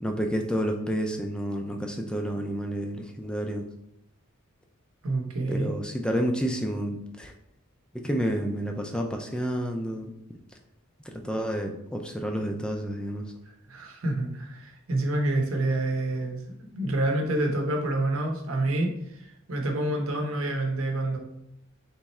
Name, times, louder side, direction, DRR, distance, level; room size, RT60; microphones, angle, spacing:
voice 1, 0.0-3.7 5.5-7.3 7.9-10.1 11.0-13.3, equal, 5° left, 3 dB, 0.4 m, -30 dB
voice 2, 5.0-5.7 13.5-16.4 16.7-21.2, right 2 dB, 65° right, 2 dB, 0.8 m, -28 dB
3.5 x 3.0 x 4.2 m, 0.80 s
head